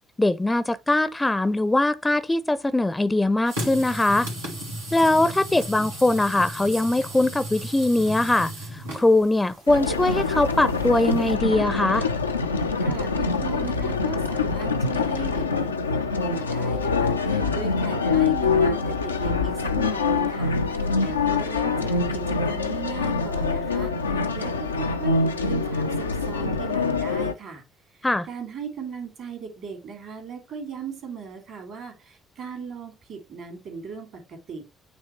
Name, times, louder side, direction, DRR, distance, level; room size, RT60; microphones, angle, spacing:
voice 1, 0.2-4.3 4.9-12.1 28.0-28.3, left 2 dB, 15° left, 0.5 m, -21 dB
sound 1, 3.5-11.3, equal, 90° right, 2.1 m, -36 dB
sound 2, 9.7-27.3, left 4 dB, 90° left, 0.4 m, -25 dB
voice 2, 12.8-27.6 27.9-34.6, right 5 dB, 60° right, 2.7 m, -38 dB
8.8 x 3.0 x 4.4 m
figure-of-eight pair, 45°, 0 cm